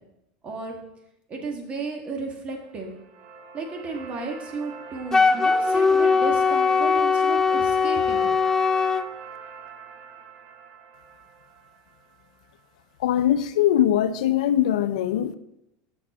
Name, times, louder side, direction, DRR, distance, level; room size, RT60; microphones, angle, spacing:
voice 1, 0.4-0.7 1.3-2.9 3.5-8.4, right 3 dB, 35° right, 1.5 m, -33 dB
sound 1, 2.6-12.6, right 4 dB, 60° right, 0.8 m, -43 dB
Wind instrument woodwind instrument, 5.1-9.1, left 5 dB, 15° left, 0.3 m, -20 dB
voice 2, 13.0-15.4, left 11 dB, 90° left, 0.4 m, -21 dB
6.0 x 4.6 x 6.0 m
supercardioid pair, 115°, 4 cm